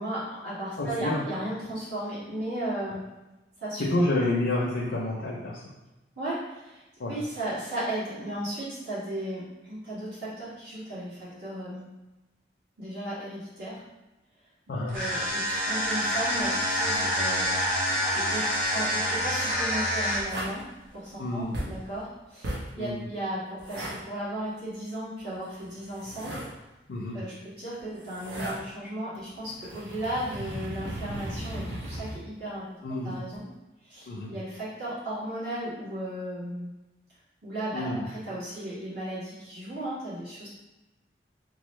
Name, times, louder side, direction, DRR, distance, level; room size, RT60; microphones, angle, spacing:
voice 1, 0.0-3.0 3.6-3.8 6.1-6.8 7.1-11.9 12.8-13.8 14.9-17.6 17.8-20.6 20.9-26.3 27.1-32.6 33.0-33.4 33.8-36.7 37.4-40.5, right 1 dB, 65° right, -10 dB, 1.5 m, -35 dB
voice 2, 0.8-1.3 3.9-5.6 7.0-7.1 14.7-14.9 21.2-21.5 22.8-23.0 26.9-27.2 32.8-33.1 34.1-34.3 37.7-38.0, left 1 dB, 70° left, -4 dB, 0.5 m, -28 dB
sound 1, 14.9-20.4, equal, 45° right, 0.9 m, -27 dB
sound 2, 20.3-20.6 21.5-21.8 22.4-22.7 23.6-24.0 25.6-26.5 27.8-28.6 29.1-32.2 33.1-33.4, right 1 dB, 90° right, 0.7 m, -36 dB
3.0 x 2.0 x 3.1 m, 1.0 s
head